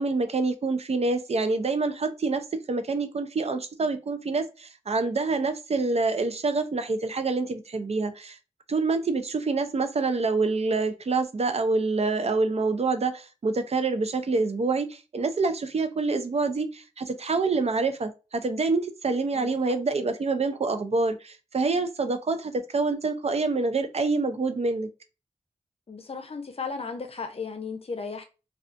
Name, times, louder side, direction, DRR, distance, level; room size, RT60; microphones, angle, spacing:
voice 1, 0.0-8.4 8.7-24.9, right 3 dB, 55° right, 0.4 m, -26 dB
voice 2, 25.9-28.2, left 4 dB, 55° left, 0.5 m, -35 dB
2.4 x 2.3 x 2.5 m
cardioid pair, 45°, 13 cm